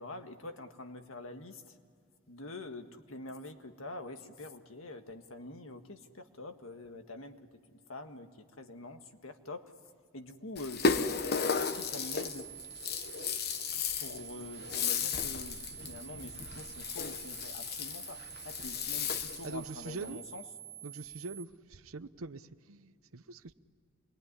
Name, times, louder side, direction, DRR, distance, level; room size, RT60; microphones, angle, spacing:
voice 1, 0.0-1.8 2.3-7.4 7.7-9.7 10.1-10.9 11.6-12.5 13.7-20.5, left 2 dB, 75° left, 6 dB, 1.7 m, -46 dB
Rattle (instrument), 10.6-19.5, left 5 dB, 50° left, 1.0 m, -34 dB
sound 1, 11.4-21.4, right 12 dB, 55° right, 1.6 m, -48 dB
voice 2, 19.4-20.2 20.8-23.5, right 3 dB, 85° right, 13 dB, 0.8 m, -43 dB
27.5 x 22.0 x 9.8 m, 2.2 s
head